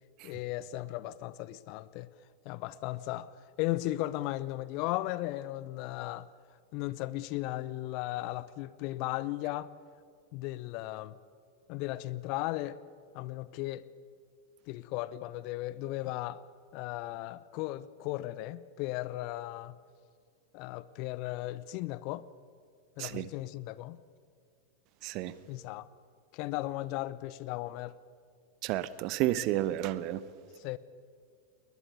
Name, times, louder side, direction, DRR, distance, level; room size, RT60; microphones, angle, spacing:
voice 1, 0.2-2.1 2.4-3.3 3.6-6.3 6.7-9.7 10.3-11.2 11.7-12.8 13.1-13.9 14.7-16.4 16.7-19.8 20.5-22.2 23.0-24.0 25.5-25.8 26.3-28.0 30.6-30.8, left 16 dB, 45° left, 0.8 m, -36 dB
voice 2, 25.0-25.3 28.6-30.2, right 14 dB, 40° right, 1.0 m, -31 dB
21.0 x 20.5 x 8.3 m
figure-of-eight pair, 90°, 0 cm